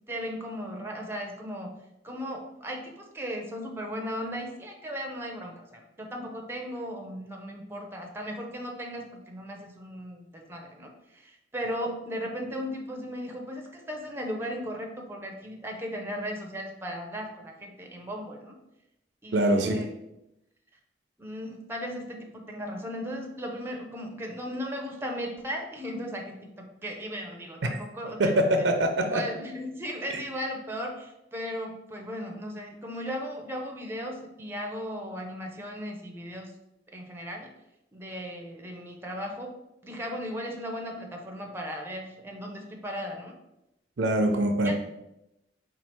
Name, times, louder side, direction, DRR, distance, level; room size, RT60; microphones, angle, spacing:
voice 1, 0.0-1.8 2.0-18.5 19.2-19.8 21.2-28.3 28.6-28.7 29.0-36.5 36.9-37.5 37.9-39.6 39.8-43.3 44.6-44.7, equal, 15° right, 1 dB, 0.6 m, -36 dB
voice 2, 19.3-19.8 27.6-27.8 28.2-29.2 44.0-44.7, right 1 dB, 80° right, 5 dB, 0.5 m, -23 dB
4.4 x 2.4 x 4.3 m, 0.88 s
head